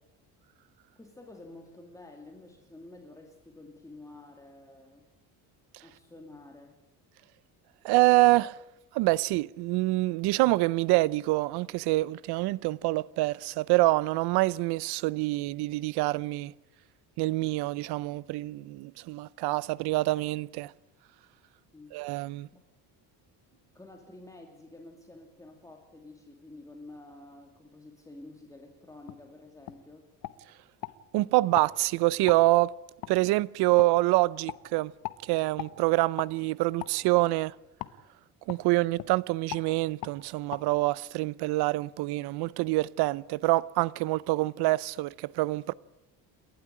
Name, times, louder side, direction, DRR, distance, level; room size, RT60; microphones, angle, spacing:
voice 1, 1.0-5.1 5.8-6.8 21.7-21.9 22.5-22.6 23.7-30.1, left 2 dB, 10° left, 2.4 m, -50 dB
voice 2, 7.8-8.6 8.9-16.5 17.2-20.7 21.9-22.5 31.1-32.7 33.1-34.9 35.2-37.5 38.5-45.7, right 20 dB, 75° right, 0.7 m, -26 dB
sound 1, 29.1-29.2 29.7-29.8 30.2-31.0 31.5-31.7 32.3-32.4 33.0-33.1 33.8-33.9 34.5-34.6 35.0-35.2 35.6-35.7 36.2-36.3 36.8-37.0 37.8-38.0 38.5-38.6 38.9-39.1 39.5-39.7 40.0-40.2 40.5-40.6, left 15 dB, 60° left, 1.2 m, -38 dB
29.0 x 12.5 x 10.0 m
cardioid pair, 150°, 39 cm